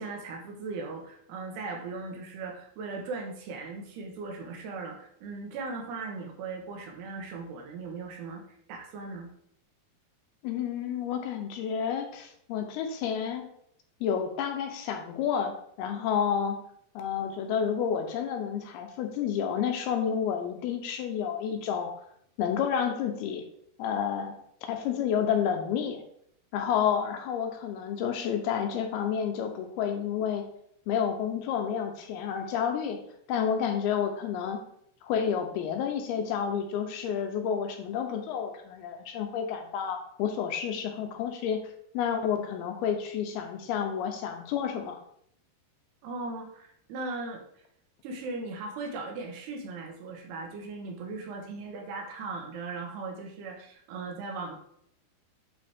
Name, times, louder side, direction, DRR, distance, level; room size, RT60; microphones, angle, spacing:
voice 1, 0.0-8.4 8.7-9.3 46.0-47.4 48.0-54.6, right 3 dB, 80° right, 1 dB, 3.2 m, -38 dB
voice 2, 10.4-13.4 14.0-16.6 17.0-21.9 22.4-23.4 23.8-24.3 24.7-26.0 26.5-30.4 30.9-33.0 33.3-34.6 35.0-41.6 41.9-45.0, left 8 dB, 80° left, 4 dB, 2.5 m, -30 dB
10.5 x 4.1 x 3.5 m, 0.69 s
omnidirectional pair, 4.8 m